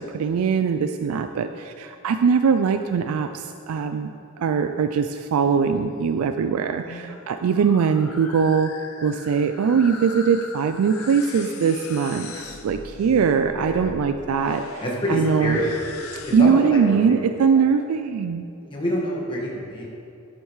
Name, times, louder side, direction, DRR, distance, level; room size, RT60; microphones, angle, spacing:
voice 1, 0.0-4.1 4.4-8.7 9.0-14.8 15.1-15.6 16.3-18.4, right 6 dB, 80° right, 8 dB, 0.3 m, -21 dB
sound 1, 6.7-16.7, left 3 dB, 75° left, 0.8 m, -39 dB
voice 2, 13.5-13.8 14.8-15.7 16.2-17.1 18.6-19.9, equal, 25° left, -3 dB, 1.6 m, -27 dB
10.5 x 8.4 x 3.2 m, 2.7 s
head